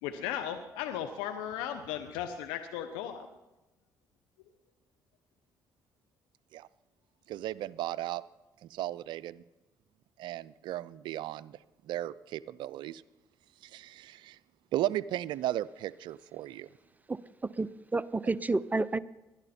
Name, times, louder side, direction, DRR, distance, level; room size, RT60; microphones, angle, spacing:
voice 1, 0.0-3.3, left 10 dB, 90° left, 8 dB, 0.8 m, -36 dB
voice 2, 7.3-8.2 8.6-9.4 10.2-11.6 11.9-13.0 13.6-14.4 14.7-16.7, right 13 dB, 75° right, 18 dB, 0.4 m, -35 dB
voice 3, 17.1-19.0, right 3 dB, 20° right, 17 dB, 0.7 m, -31 dB
20.5 x 11.5 x 4.3 m, 1.0 s
supercardioid pair, 55°, 8 cm